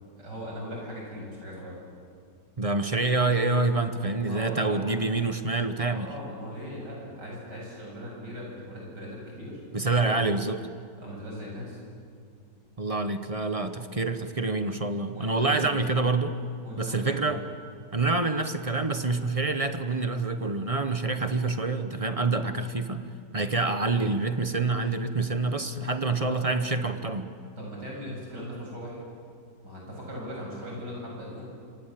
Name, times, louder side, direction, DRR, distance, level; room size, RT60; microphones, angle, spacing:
voice 1, 0.2-1.8 4.3-4.9 5.9-10.1 11.0-11.8 15.1-15.8 16.6-17.3 26.3-26.5 27.6-29.0 29.6-31.5, equal, 90° right, -3 dB, 8.8 m, -39 dB
voice 2, 2.6-6.1 9.7-10.7 12.8-16.4 16.8-17.4 17.9-23.1 23.3-27.3, right 3 dB, 25° right, 9 dB, 0.9 m, -27 dB
26.5 x 26.0 x 7.7 m, 2.3 s
omnidirectional pair, 1.8 m